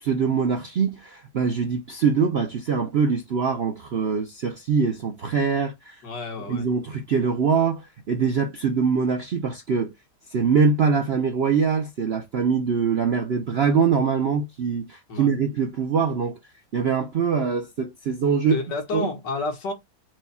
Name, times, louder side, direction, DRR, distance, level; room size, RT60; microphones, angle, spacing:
voice 1, 0.0-6.0 6.5-9.9 10.3-16.4 16.7-18.6 18.9-19.1, right 6 dB, 60° right, 0.6 m, -23 dB
voice 2, 6.0-6.7 15.1-15.3 18.5-19.7, left 3 dB, 75° left, 2.0 m, -30 dB
4.7 x 2.3 x 4.1 m
omnidirectional pair, 1.9 m